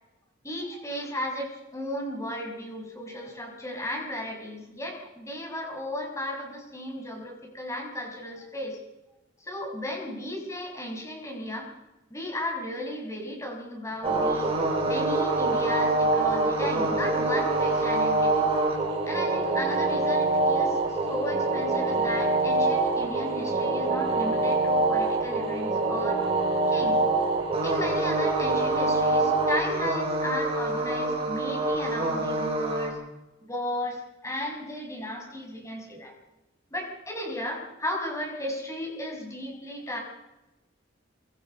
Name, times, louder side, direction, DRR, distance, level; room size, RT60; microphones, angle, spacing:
voice 1, 0.4-8.8 9.4-11.7 12.1-14.5 14.9-18.5 19.0-26.2 26.7-27.0 27.6-33.0 33.4-36.1 36.7-40.0, left 1 dB, 15° left, 1 dB, 6.3 m, -35 dB
sound 1, 14.0-32.9, right 2 dB, 30° right, 6.4 m, -25 dB
25.5 x 23.5 x 5.6 m, 1.0 s
head